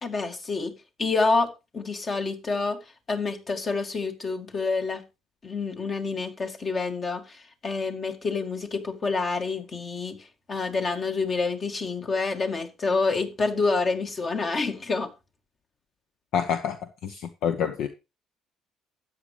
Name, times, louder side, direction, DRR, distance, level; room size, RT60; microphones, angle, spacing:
voice 1, 0.0-2.8 3.1-5.0 5.4-10.2 10.5-15.1, left 4 dB, 40° left, 2.1 m, -28 dB
voice 2, 16.3-17.9, left 8 dB, 65° left, 0.8 m, -28 dB
13.0 x 8.9 x 3.1 m
hypercardioid pair, 50°, 0 cm